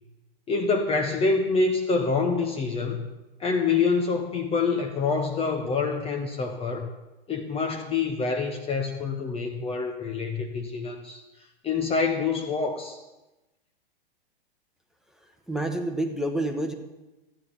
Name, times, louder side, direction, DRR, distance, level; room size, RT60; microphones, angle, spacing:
voice 1, 0.5-3.1 3.4-6.9 7.3-11.2 11.6-13.0, left 4 dB, 20° left, 4 dB, 1.0 m, -26 dB
voice 2, 15.5-16.7, right 1 dB, ahead, 4 dB, 1.2 m, -28 dB
13.5 x 9.5 x 5.6 m, 1.1 s
figure-of-eight pair, 105°, 29 cm